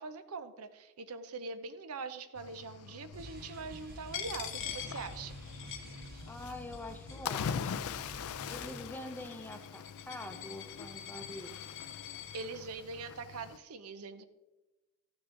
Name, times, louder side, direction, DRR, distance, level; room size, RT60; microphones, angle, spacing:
voice 1, 0.0-5.4 12.3-14.3, right 4 dB, 85° right, 11 dB, 0.7 m, -43 dB
Cricket / Waves surf, 2.4-13.6, left 7 dB, 85° left, 0.4 m, -43 dB
sound 1, 3.1-8.8, right 1 dB, 45° right, 0.9 m, -49 dB
Coin (dropping), 4.1-6.5 6.7-7.5 8.2-12.5, left 9 dB, 55° left, 1.0 m, -45 dB
voice 2, 6.3-8.0 8.5-11.6, left 1 dB, 10° left, 7 dB, 0.6 m, -45 dB
13.5 x 6.1 x 3.8 m, 1.1 s
head